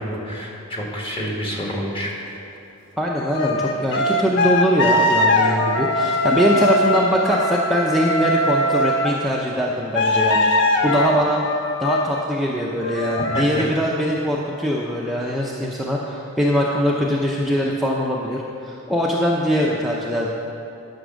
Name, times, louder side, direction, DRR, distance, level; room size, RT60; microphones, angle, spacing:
voice 1, 0.0-2.1 11.0-11.1 13.3-13.7, equal, 25° left, -2 dB, 1.8 m, -28 dB
voice 2, 3.0-10.5 10.8-11.4 11.8-20.3, equal, ahead, -4 dB, 0.6 m, -22 dB
sound 1, 3.3-9.1 9.9-12.3 12.8-13.4, left 1 dB, 60° left, 0.7 m, -21 dB
11.5 x 6.0 x 6.3 m, 2.8 s
head